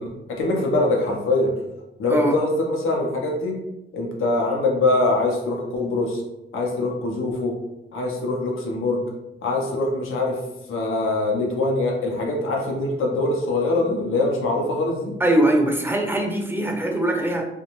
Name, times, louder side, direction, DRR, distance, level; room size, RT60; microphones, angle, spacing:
voice 1, 0.0-1.5 2.0-3.5 3.9-6.2 6.5-7.6 7.9-9.0 9.4-10.4 10.7-15.1, left 2 dB, 85° left, -1 dB, 0.6 m, -23 dB
voice 2, 15.2-17.5, right 1 dB, 10° right, 1 dB, 0.5 m, -21 dB
2.5 x 2.2 x 2.9 m, 0.90 s
cardioid pair, 65°, 21 cm